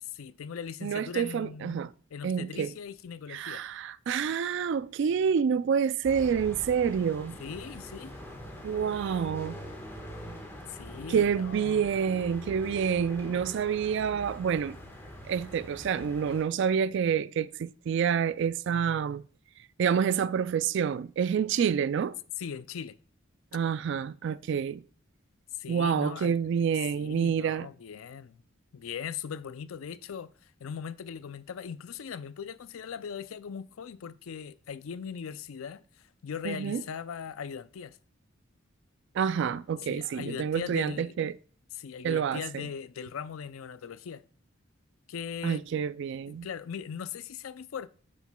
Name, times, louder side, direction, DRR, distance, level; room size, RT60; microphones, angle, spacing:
voice 1, 0.0-1.8 2.1-3.6 7.4-8.2 10.7-11.8 22.4-23.0 25.6-26.3 26.9-28.4 28.7-30.3 30.6-38.0 39.8-41.2 41.7-44.2 45.1-45.6 46.3-47.9, left 7 dB, 85° left, 0.4 m, -39 dB
voice 2, 0.8-1.9 2.2-2.7 3.3-7.4 8.6-9.6 11.1-14.8 15.3-19.2 19.8-22.2 23.5-24.8 25.7-27.7 36.4-36.8 39.2-41.3 42.0-42.6 45.4-46.5, right 7 dB, 60° right, 0.3 m, -28 dB
sound 1, 6.0-16.4, equal, 10° left, 1.3 m, -43 dB
9.6 x 7.2 x 2.2 m
head